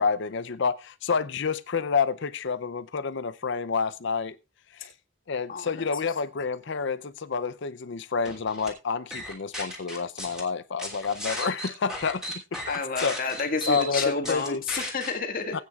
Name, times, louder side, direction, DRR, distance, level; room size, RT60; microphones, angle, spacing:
voice 1, 0.0-4.4 4.7-4.9 5.3-12.7 13.0-13.2 13.7-14.6 15.5-15.6, left 5 dB, 65° left, 0.6 m, -29 dB
voice 2, 5.5-5.9 12.7-15.6, left 4 dB, 45° left, 1.9 m, -30 dB
sound 1, 8.2-8.7 9.1-10.4 10.8-15.1, left 1 dB, 5° right, 3.0 m, -35 dB
19.0 x 9.1 x 2.4 m
head